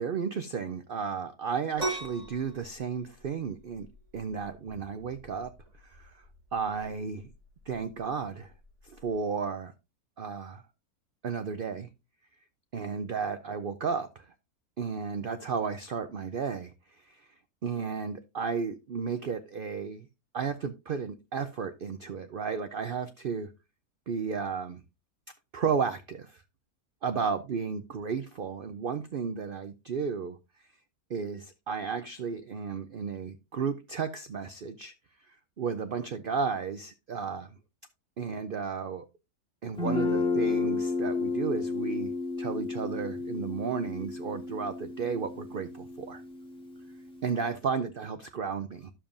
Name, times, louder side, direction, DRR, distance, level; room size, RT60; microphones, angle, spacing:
voice 1, 0.0-3.9 4.1-5.5 5.8-6.2 6.5-7.3 7.7-8.5 8.8-9.7 10.2-10.6 11.2-11.9 12.7-14.3 14.8-16.7 17.0-17.2 17.6-20.1 20.3-23.5 24.1-24.8 25.5-26.4 27.0-30.4 31.1-34.9 35.3-37.6 38.2-39.1 39.6-42.1 42.4-46.2 47.2-48.9, right 6 dB, 65° right, 0.5 m, -33 dB
sound 1, 1.8-9.2, right 2 dB, 25° right, 5.3 m, -41 dB
Guitar, 39.8-47.5, left 4 dB, 5° left, 2.3 m, -32 dB
11.0 x 7.0 x 2.5 m
omnidirectional pair, 1.6 m